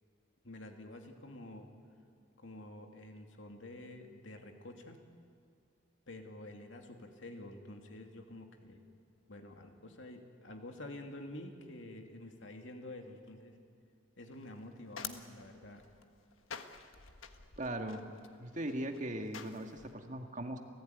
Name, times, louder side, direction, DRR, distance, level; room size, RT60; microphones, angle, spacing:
voice 1, 0.4-1.7 2.4-5.0 6.1-8.8 9.3-13.5 14.2-15.8, left 1 dB, 70° left, 4 dB, 2.5 m, -49 dB
sound 1, 14.3-19.9, left 7 dB, 85° left, 1.5 m, -49 dB
voice 2, 17.6-18.1 18.4-20.6, right 1 dB, 40° right, 4 dB, 1.8 m, -39 dB
30.0 x 16.0 x 9.4 m, 2.3 s
head